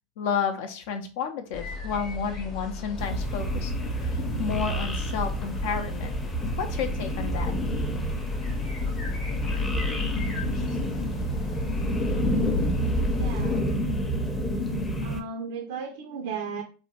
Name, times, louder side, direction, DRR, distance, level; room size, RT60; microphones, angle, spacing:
voice 1, 0.2-6.2 6.6-7.5, left 6 dB, 70° left, 6 dB, 0.5 m, -31 dB
sound 1, 1.5-13.6, left 4 dB, 40° left, 0.8 m, -34 dB
sound 2, 3.0-15.2, equal, 10° left, 0.6 m, -29 dB
voice 2, 13.2-13.7 15.0-16.6, right 5 dB, 75° right, 4 dB, 0.4 m, -35 dB
2.7 x 2.1 x 2.8 m, 0.36 s
supercardioid pair, 115°, 0 cm